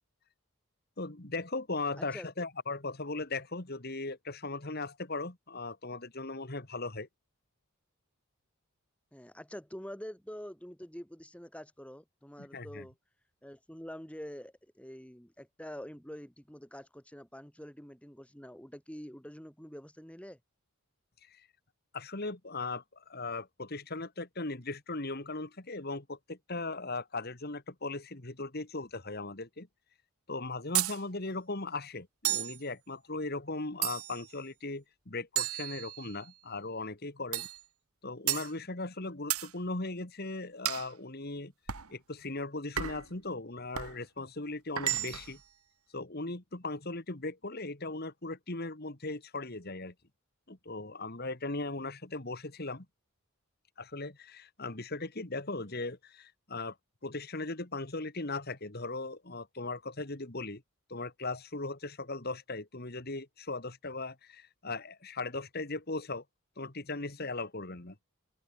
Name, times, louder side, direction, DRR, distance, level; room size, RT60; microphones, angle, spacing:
voice 1, 1.0-7.1 12.4-12.9 21.3-21.4 21.9-29.7 30.3-37.5 38.0-41.5 41.9-45.4 45.9-49.9 50.5-52.9 53.8-56.8 57.0-60.6 60.9-66.2 66.6-68.0, left 3 dB, 45° left, 2.0 m, -38 dB
voice 2, 2.0-2.3 9.1-12.9 13.4-20.4, equal, 5° left, 2.5 m, -46 dB
sound 1, 30.7-31.0 32.2-32.6 33.8-34.3 35.4-36.3 37.3-37.6 38.3-38.5 39.3-39.5 40.6-40.9 41.7-41.9 42.8-43.1 43.7-44.0 44.8-45.4, right 13 dB, 85° right, 1.6 m, -33 dB
open air
head